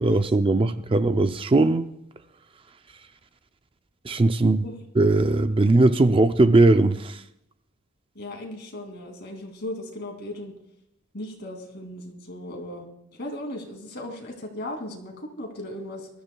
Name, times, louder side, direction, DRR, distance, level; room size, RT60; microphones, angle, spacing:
voice 1, 0.0-1.9 4.0-4.7 4.9-7.2, right 2 dB, 25° right, 10 dB, 0.4 m, -19 dB
voice 2, 8.1-10.5 11.1-16.1, left 1 dB, 50° left, 3 dB, 2.5 m, -37 dB
22.0 x 13.5 x 2.3 m, 0.81 s
head